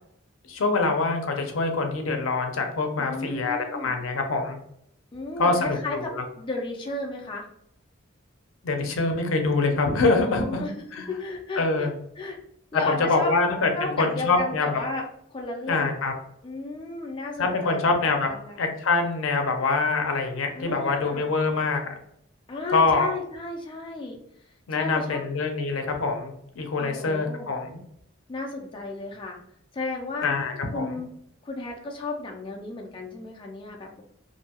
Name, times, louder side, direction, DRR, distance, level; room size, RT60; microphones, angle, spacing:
voice 1, 0.5-4.6 5.4-6.2 8.6-10.6 10.9-11.0 11.6-11.9 12.9-14.8 15.7-16.1 17.4-18.3 18.6-21.8 22.7-23.1 24.7-27.8 30.2-30.8, left 3 dB, 75° left, 4 dB, 0.5 m, -25 dB
voice 2, 3.0-4.0 5.1-7.5 10.2-11.9 12.2-12.4 12.7-13.3 13.7-15.0 15.3-16.0 16.4-17.8 18.2-18.6 20.5-21.3 22.5-24.2 24.7-25.2 26.8-27.5 28.3-29.4 29.7-30.4 30.7-31.1 31.4-34.0, left 3 dB, 25° left, 0 dB, 0.4 m, -33 dB
2.6 x 2.2 x 2.8 m, 0.71 s
head